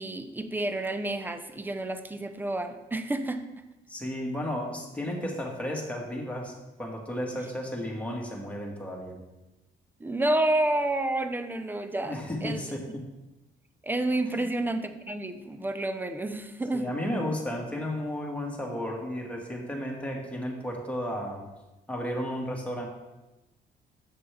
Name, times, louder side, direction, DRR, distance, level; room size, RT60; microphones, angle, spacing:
voice 1, 0.0-3.4 10.0-12.2 12.4-12.6 13.8-16.9, right 1 dB, 10° right, 8 dB, 0.6 m, -29 dB
voice 2, 3.9-6.5 6.8-9.2 12.0-13.0 14.3-14.5 16.7-21.5 21.9-22.9, equal, 5° left, -1 dB, 1.9 m, -33 dB
7.9 x 6.7 x 3.4 m, 1.0 s
cardioid pair, 90°, 20 cm